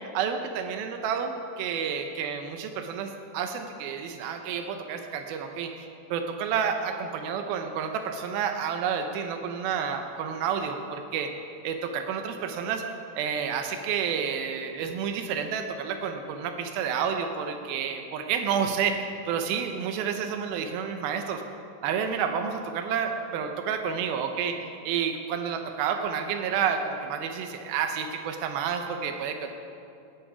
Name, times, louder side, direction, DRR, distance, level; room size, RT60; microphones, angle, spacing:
voice 1, 0.1-11.3 11.6-12.8 13.2-21.4 21.8-24.6 24.8-29.5, right 7 dB, 90° right, 5 dB, 2.6 m, -30 dB
20.0 x 10.0 x 5.0 m, 2.7 s
omnidirectional pair, 4.1 m